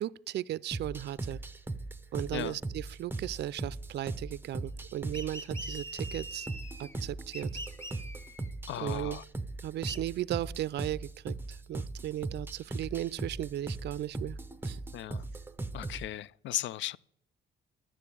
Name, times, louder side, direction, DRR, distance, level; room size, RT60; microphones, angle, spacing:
voice 1, 0.0-1.4 2.1-6.5 6.8-7.5 8.8-9.2 9.6-14.4 14.6-14.8, right 13 dB, 60° right, 0.4 m, -36 dB
sound 1, 0.7-16.1, right 2 dB, 10° right, 0.7 m, -39 dB
sound 2, 5.1-7.0 7.3-8.5 9.9-10.0, right 1 dB, 15° left, 1.6 m, -43 dB
voice 2, 8.7-9.2 14.9-15.2 15.7-17.0, left 13 dB, 70° left, 0.4 m, -36 dB
11.0 x 7.6 x 8.4 m
cardioid pair, 90°, 20 cm